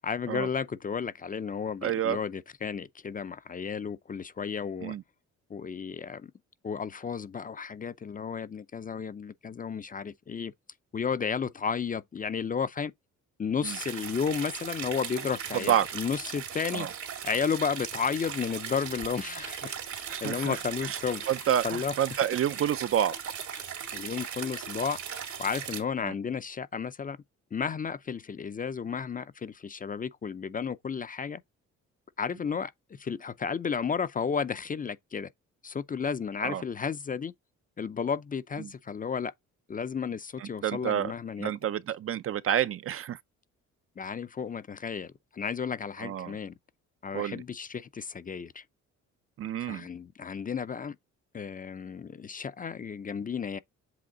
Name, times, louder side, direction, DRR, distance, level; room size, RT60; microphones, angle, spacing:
voice 1, 0.0-5.0 5.5-6.3 6.6-10.5 10.9-12.9 13.4-16.9 17.2-19.8 20.2-21.3 21.6-21.9 23.5-23.6 23.9-27.2 27.5-31.4 32.2-35.3 35.6-37.3 37.8-39.3 39.7-41.5 44.0-46.5 47.0-48.6 49.6-51.0 51.3-53.6, left 6 dB, 30° left, 0.5 m, -33 dB
voice 2, 1.8-2.2 4.8-5.0 13.6-13.8 15.7-15.9 16.7-16.9 20.1-21.0 21.3-23.2 26.0-26.1 36.4-36.6 38.6-38.7 40.4-41.1 41.4-43.2 46.0-46.4 47.1-47.4 49.4-49.9, right 10 dB, 45° right, 0.5 m, -29 dB
sound 1, 13.6-25.8, right 8 dB, 75° right, 2.2 m, -38 dB
7.8 x 3.2 x 3.8 m
cardioid pair, 90°, 30 cm